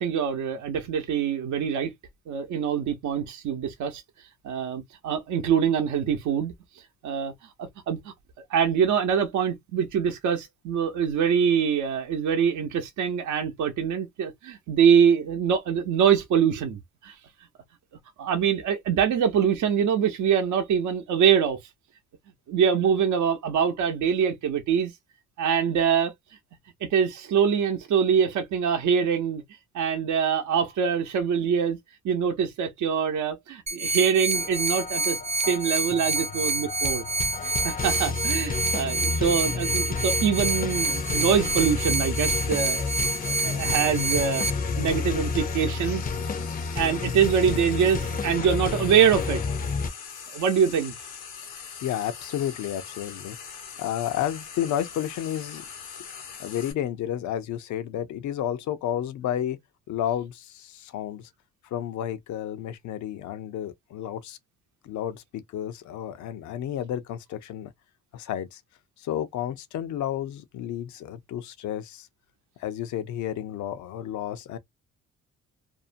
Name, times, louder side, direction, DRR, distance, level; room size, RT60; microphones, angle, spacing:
voice 1, 0.0-1.9 2.3-4.0 4.4-6.5 7.0-7.3 7.6-8.1 8.5-17.1 18.2-21.6 22.5-24.9 25.4-26.1 26.9-29.4 29.7-31.8 32.0-35.2 35.5-37.0 37.4-42.9 43.2-44.4 44.8-46.0 46.7-49.4 50.3-50.9, right 7 dB, 75° right, 0.7 m, -24 dB
sound 1, 33.7-44.5, right 4 dB, 20° right, 0.5 m, -28 dB
sound 2, 34.3-49.9, left 5 dB, 30° left, 0.5 m, -31 dB
Frying (food), 40.9-56.7, left 6 dB, 90° left, 1.0 m, -42 dB
voice 2, 51.8-53.4 53.8-55.7 56.4-59.6 59.9-61.3 61.7-64.4 64.8-67.7 68.1-68.6 69.0-72.1 72.6-74.6, left 11 dB, 70° left, 0.6 m, -31 dB
2.6 x 2.1 x 2.5 m
cardioid pair, 90°, 30 cm